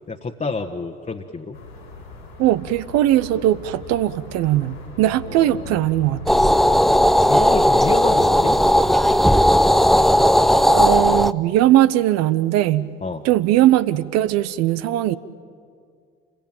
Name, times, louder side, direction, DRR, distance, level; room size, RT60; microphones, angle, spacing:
voice 1, 0.1-1.6 5.3-5.8 7.3-8.5 13.0-13.2, left 4 dB, 25° left, 1 dB, 1.5 m, -28 dB
sound 1, 1.5-9.2, left 3 dB, 90° left, 5.1 m, -40 dB
voice 2, 2.4-6.2 10.7-12.9 13.2-15.2, right 13 dB, 60° right, 14 dB, 1.0 m, -19 dB
sound 2, 6.3-11.3, equal, ahead, 0.7 m, -16 dB
28.5 x 22.0 x 9.1 m, 2.1 s
figure-of-eight pair, 50°, 29 cm